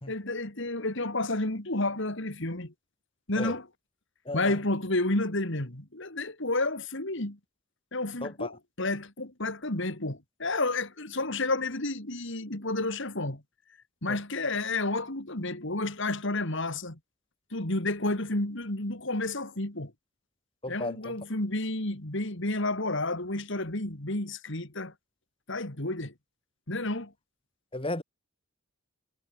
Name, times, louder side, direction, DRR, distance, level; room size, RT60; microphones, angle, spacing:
voice 1, 0.1-2.7 3.3-3.7 4.3-7.4 7.9-13.4 14.0-17.0 17.5-19.9 20.7-24.9 25.5-26.1 26.7-27.1, left 2 dB, 60° left, 3.3 m, -31 dB
voice 2, 4.3-4.6 8.2-8.5 14.1-14.2 20.6-21.1 27.7-28.0, left 2 dB, 25° left, 2.7 m, -34 dB
head